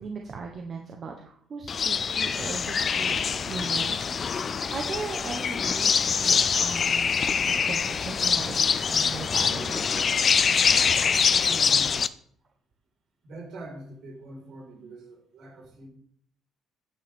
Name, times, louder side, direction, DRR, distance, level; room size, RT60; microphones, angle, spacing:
voice 1, 0.0-4.0 4.3-9.9, right 4 dB, 35° right, 2 dB, 1.0 m, -38 dB
sound 1, 1.7-12.1, left 6 dB, 30° left, 0.4 m, -24 dB
voice 2, 11.3-12.0 13.2-15.9, right 1 dB, 55° right, -1 dB, 4.7 m, -43 dB
10.0 x 8.7 x 3.6 m, 0.63 s
cardioid pair, 150°, 0 cm